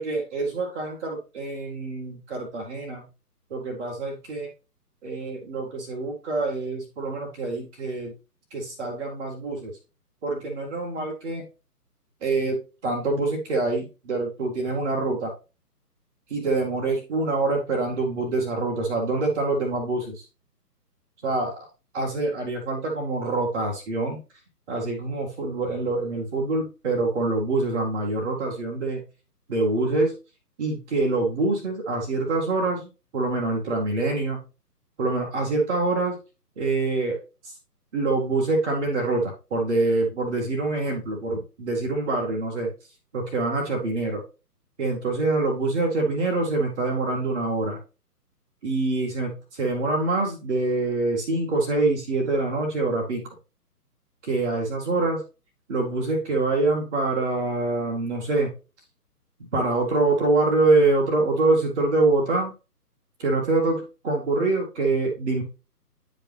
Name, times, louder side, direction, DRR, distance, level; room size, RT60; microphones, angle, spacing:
voice 1, 0.0-3.0 3.5-4.5 5.0-8.1 8.5-9.7 10.2-11.4 12.2-15.3 16.3-20.2 21.2-21.5 21.9-24.2 24.7-29.0 29.5-30.1 30.6-34.4 35.0-36.1 36.6-37.5 37.9-42.7 43.1-44.2 44.8-47.8 48.6-53.2 54.2-55.2 55.7-58.5 59.5-62.5 63.2-65.4, right 2 dB, 5° right, -9 dB, 0.7 m, -25 dB
9.8 x 5.2 x 3.3 m, 0.30 s
figure-of-eight pair, 140°, 48 cm